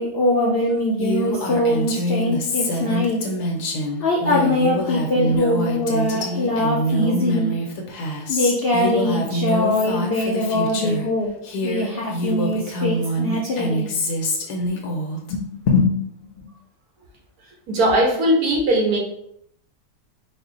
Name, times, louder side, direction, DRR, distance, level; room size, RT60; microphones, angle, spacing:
voice 1, 0.0-3.3 4.0-7.6 8.3-11.3 11.6-13.9 15.3-15.9 16.4-16.5, left 1 dB, 70° left, -2 dB, 0.5 m, -22 dB
Female speech woman speaking, 1.0-11.1 11.4-15.3, equal, 90° left, 1.3 m, -25 dB
voice 2, 17.7-19.0, right 1 dB, 70° right, 1 dB, 1.3 m, -18 dB
4.3 x 2.1 x 3.8 m, 0.73 s
omnidirectional pair, 1.7 m